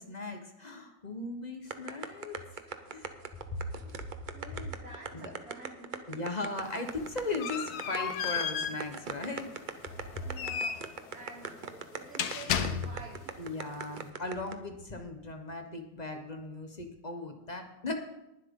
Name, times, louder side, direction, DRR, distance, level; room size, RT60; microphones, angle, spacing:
voice 1, 0.0-3.1 3.5-3.9 4.5-4.7 5.1-5.3 6.1-9.7 13.4-17.9, left 2 dB, 30° left, 5 dB, 1.1 m, -38 dB
sound 1, 1.7-14.5, right 6 dB, 45° right, 0.6 m, -39 dB
voice 2, 4.3-6.1 10.2-10.8 11.1-13.4, right 2 dB, 65° right, -1 dB, 3.0 m, -48 dB
sound 2, 6.6-13.3, left 8 dB, 80° left, 1.3 m, -35 dB
20.0 x 7.6 x 3.8 m, 0.92 s
omnidirectional pair, 1.7 m